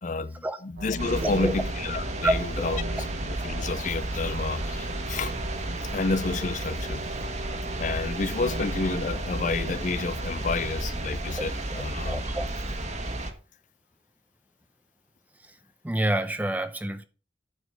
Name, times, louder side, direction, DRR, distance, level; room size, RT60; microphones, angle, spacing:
voice 1, 0.0-2.8 3.4-5.3 5.9-7.1 7.8-12.2, left 3 dB, 40° left, 0.5 m, -30 dB
sound 1, 0.8-9.7, right 1 dB, 80° right, 1.2 m, -37 dB
sound 2, 1.0-13.3, right 2 dB, 40° right, 1.4 m, -33 dB
voice 2, 1.2-1.5 2.2-2.8 11.3-11.5 12.0-12.5 15.4-15.6 15.8-17.0, right 1 dB, 10° right, 0.6 m, -28 dB
11.5 x 5.0 x 4.7 m
head